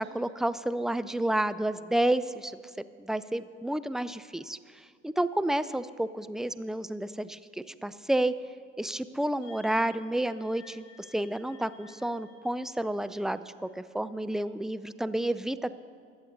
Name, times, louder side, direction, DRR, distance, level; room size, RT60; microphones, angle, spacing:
voice 1, 0.0-8.3 8.8-10.8 11.1-15.8, right 1 dB, ahead, 13 dB, 0.4 m, -30 dB
sound 1, 9.4-13.8, left 5 dB, 45° left, 3.9 m, -57 dB
21.5 x 8.0 x 4.1 m, 2.2 s
hypercardioid pair, 60°, 33 cm